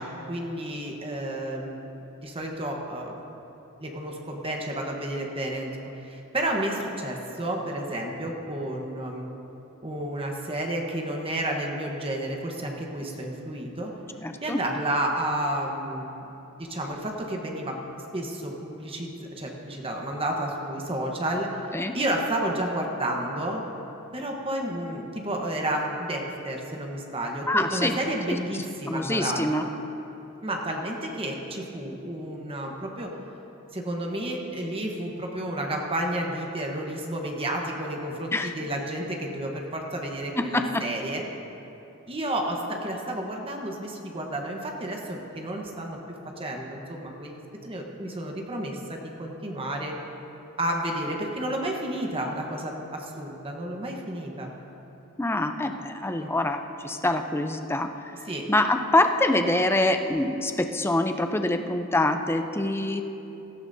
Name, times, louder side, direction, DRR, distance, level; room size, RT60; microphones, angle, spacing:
voice 1, 0.0-1.8 2.2-3.2 3.8-9.3 9.8-13.9 14.4-16.3 16.6-17.8 18.1-21.6 21.9-23.6 24.1-29.7 30.4-33.1 33.7-41.2 42.1-49.9 50.6-54.5 56.2-56.3 58.2-58.5, right 1 dB, 25° right, 0 dB, 1.1 m, -31 dB
voice 2, 14.2-14.6 21.7-21.9 27.5-28.0 28.3-28.4 28.9-29.7 38.3-38.5 40.4-40.8 55.2-57.9 58.5-63.0, left 1 dB, 10° left, 6 dB, 0.5 m, -25 dB
17.0 x 15.5 x 2.7 m, 3.0 s
head